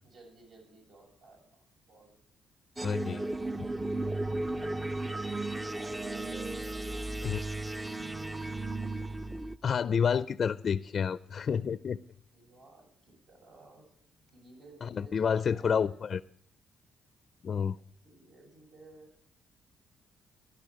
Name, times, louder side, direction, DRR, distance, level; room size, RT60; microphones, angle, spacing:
voice 1, 0.0-2.1 3.9-5.3 5.7-7.0 7.3-7.8 12.0-16.1 18.0-19.2, right 2 dB, 70° right, 7.9 m, -57 dB
voice 2, 2.8-3.2 3.6-3.7 7.2-7.4 9.6-12.0 14.8-16.2 17.4-17.8, left 7 dB, 50° left, 0.5 m, -29 dB
sound 1, 2.8-9.6, right 2 dB, 15° right, 0.6 m, -35 dB
17.0 x 11.5 x 5.0 m
cardioid pair, 90°, 0 cm